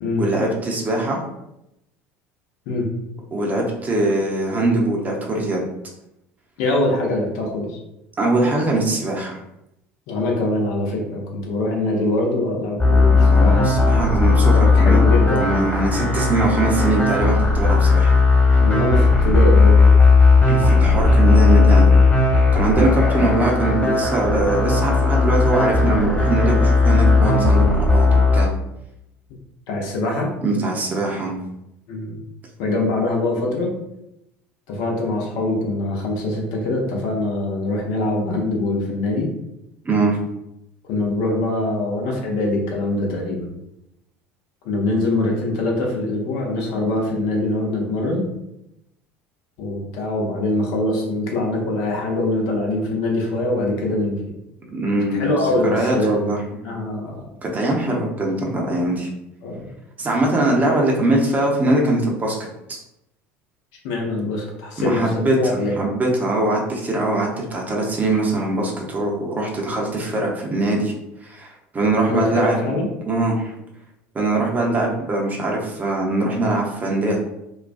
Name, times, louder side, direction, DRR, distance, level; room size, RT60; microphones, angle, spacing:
voice 1, 0.2-1.2 3.3-5.6 8.2-9.4 13.1-15.1 15.4-18.1 20.5-22.0 22.5-28.5 30.4-31.4 39.8-40.2 54.7-56.4 57.4-59.1 60.0-62.8 64.8-70.9 71.2-72.6 73.1-73.5 74.1-77.2, right 2 dB, 25° right, -1 dB, 0.6 m, -22 dB
voice 2, 6.6-7.8 10.1-13.7 14.6-15.5 18.6-19.9 23.1-23.5 29.7-30.3 31.9-32.2 32.6-33.7 34.7-39.3 40.8-43.5 44.6-48.3 49.6-54.2 55.2-56.3 56.6-57.2 59.4-59.7 63.8-65.8 72.1-72.9, left 2 dB, 60° left, 0 dB, 0.7 m, -23 dB
sound 1, 12.8-28.5, left 3 dB, 25° left, 1.2 m, -15 dB
2.3 x 2.2 x 2.5 m, 0.86 s
hypercardioid pair, 70°, 7 cm